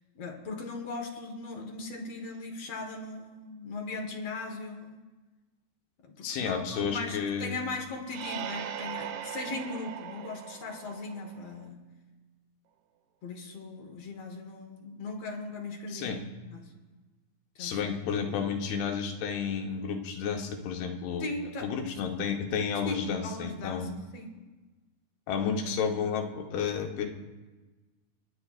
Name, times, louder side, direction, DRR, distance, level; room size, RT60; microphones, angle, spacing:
voice 1, 0.1-5.0 6.0-11.8 13.2-16.7 17.6-18.0 18.2-18.5 21.2-21.7 22.9-24.4, left 3 dB, 55° left, 2 dB, 1.8 m, -39 dB
voice 2, 6.2-7.6 15.9-16.3 17.6-21.3 21.6-23.9 25.3-27.1, left 6 dB, 80° left, 3 dB, 3.0 m, -31 dB
sound 1, 8.1-11.7, right 9 dB, 85° right, 2.7 m, -40 dB
29.5 x 10.0 x 2.4 m, 1.2 s
omnidirectional pair, 4.5 m